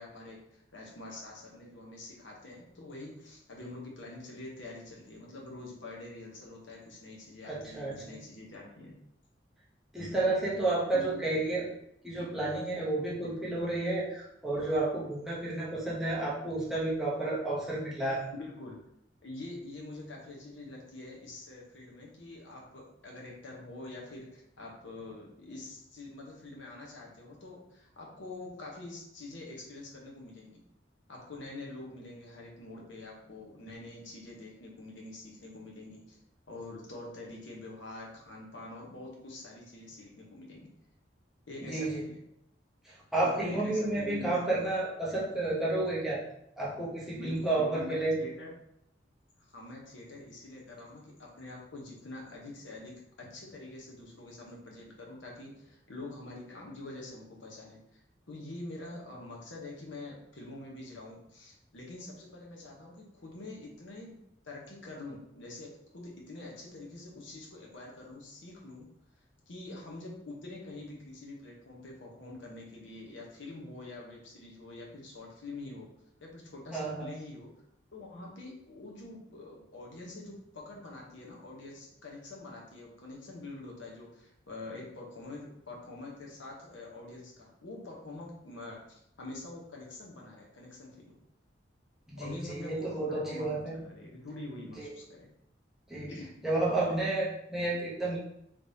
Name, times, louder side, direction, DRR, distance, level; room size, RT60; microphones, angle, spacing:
voice 1, 0.0-8.9 10.0-10.1 10.9-11.2 18.3-18.8 19.2-30.6 31.1-36.2 36.5-40.7 41.5-42.2 43.2-44.6 47.2-48.5 49.4-57.8 58.3-64.2 64.4-68.9 69.5-75.9 76.2-77.5 77.9-91.2 92.2-95.3 96.1-96.4, left 2 dB, 80° left, -2 dB, 0.9 m, -45 dB
voice 2, 7.4-8.2 9.9-11.6 12.0-18.3 41.6-42.0 42.8-46.2 46.6-48.2 76.7-77.1 92.1-93.8 94.8-94.9 95.9-96.1 96.4-98.2, right 2 dB, ahead, -7 dB, 0.8 m, -31 dB
3.4 x 3.1 x 2.7 m, 0.76 s
head